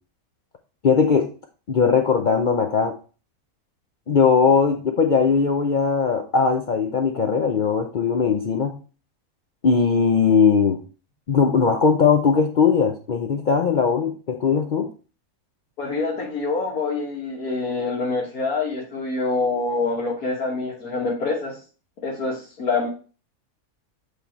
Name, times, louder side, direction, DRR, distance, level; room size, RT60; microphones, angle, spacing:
voice 1, 0.8-1.3 1.7-2.9 4.1-8.7 9.6-10.8 11.3-14.9, left 5 dB, 55° left, 4 dB, 0.5 m, -19 dB
voice 2, 15.8-21.6 22.0-22.9, left 3 dB, 80° left, -4 dB, 1.8 m, -26 dB
8.3 x 3.4 x 4.3 m, 0.37 s
omnidirectional pair, 1.5 m